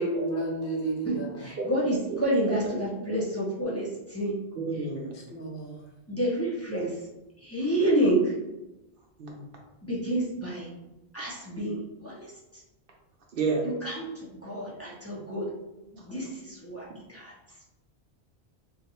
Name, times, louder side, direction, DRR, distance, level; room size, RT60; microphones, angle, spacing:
voice 1, 0.0-1.5 5.3-5.8, right 2 dB, 60° left, -1 dB, 0.7 m, -31 dB
voice 2, 1.0-4.4 6.1-6.9 7.4-8.3 9.8-10.7 11.1-12.3 13.8-15.5 15.9-17.3, right 1 dB, 15° left, -6 dB, 0.6 m, -29 dB
voice 3, 4.6-5.2 9.2-9.4 13.3-13.6, right 4 dB, 60° right, -1 dB, 0.8 m, -30 dB
2.6 x 2.4 x 4.1 m, 1.0 s
omnidirectional pair, 1.1 m